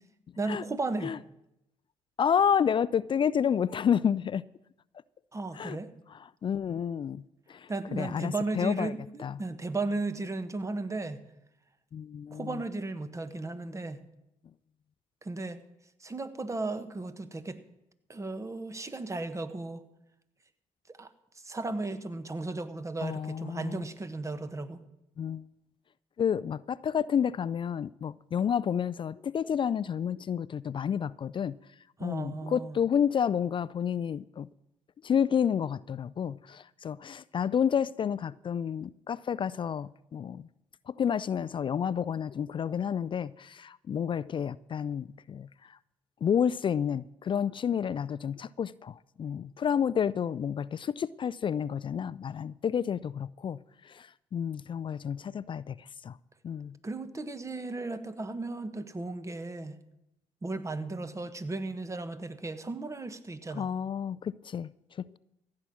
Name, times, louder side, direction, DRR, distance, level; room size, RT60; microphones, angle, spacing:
voice 1, 0.4-1.1 5.3-5.9 7.7-11.2 12.3-14.0 15.2-15.6 16.0-17.6 18.1-19.8 20.9-24.8 32.0-32.8 56.8-59.8 60.4-63.7, right 3 dB, 25° right, 11 dB, 1.3 m, -35 dB
voice 2, 2.2-4.4 5.5-5.8 6.1-7.2 7.5-8.9 9.2-9.4 11.9-12.6 23.0-23.8 25.2-25.5 26.2-31.5 32.0-34.5 35.0-40.5 40.9-45.8 46.2-56.2 56.4-56.7 63.5-65.2, left 8 dB, 40° left, 19 dB, 0.4 m, -30 dB
15.0 x 8.6 x 6.3 m, 0.85 s
supercardioid pair, 60°, 13 cm